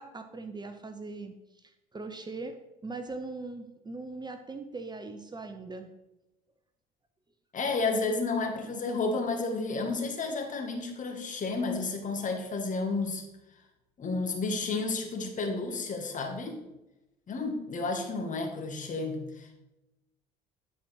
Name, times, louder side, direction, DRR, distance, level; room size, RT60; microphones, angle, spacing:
voice 1, 0.0-5.9, right 3 dB, 20° right, 8 dB, 0.8 m, -41 dB
voice 2, 7.5-13.2 14.0-16.6 17.3-19.6, left 3 dB, 40° left, 4 dB, 1.7 m, -31 dB
9.9 x 4.3 x 4.8 m, 0.95 s
hypercardioid pair, 65°, 20 cm